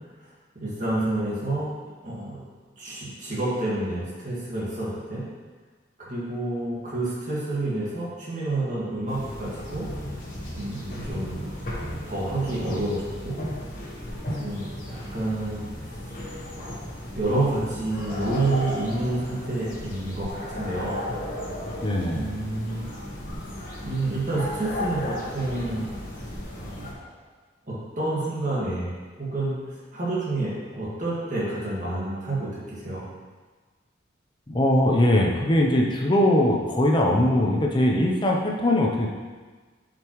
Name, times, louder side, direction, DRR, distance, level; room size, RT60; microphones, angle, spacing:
voice 1, 0.6-2.4 2.8-5.2 6.0-9.9 10.5-11.5 11.9-13.4 14.4-15.6 16.6-21.0 22.1-22.8 23.8-25.9 26.6-27.2 27.7-33.0, right 2 dB, 40° right, -8 dB, 1.9 m, -29 dB
sound 1, 9.1-26.9, left 1 dB, 45° left, 1.3 m, -35 dB
voice 2, 21.8-22.3 34.5-39.1, left 1 dB, 25° left, -1 dB, 0.7 m, -21 dB
7.9 x 5.2 x 3.1 m, 1.4 s
head